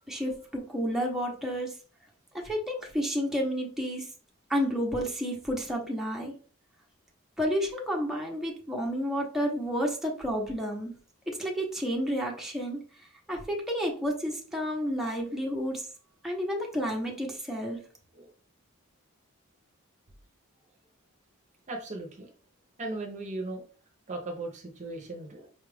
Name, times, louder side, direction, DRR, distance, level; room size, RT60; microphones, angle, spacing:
voice 1, 0.1-1.8 2.3-4.1 4.5-6.4 7.4-10.9 11.3-12.8 13.3-15.9 16.2-17.8, equal, ahead, -1 dB, 0.8 m, -31 dB
voice 2, 21.7-22.3 22.8-23.6 24.1-25.5, right 2 dB, 35° right, 3 dB, 0.7 m, -37 dB
5.2 x 2.4 x 3.3 m, 0.40 s
head